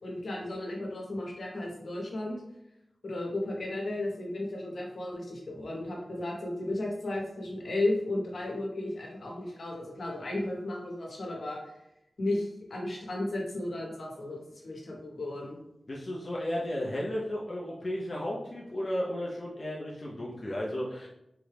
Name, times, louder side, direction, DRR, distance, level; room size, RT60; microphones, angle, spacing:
voice 1, 0.0-2.4 3.0-11.7 12.2-15.6, left 1 dB, 75° left, -1 dB, 0.9 m, -34 dB
voice 2, 15.9-21.1, left 1 dB, 40° left, -5 dB, 0.5 m, -34 dB
3.9 x 2.3 x 3.2 m, 0.85 s
wide cardioid pair, 110°, 0 cm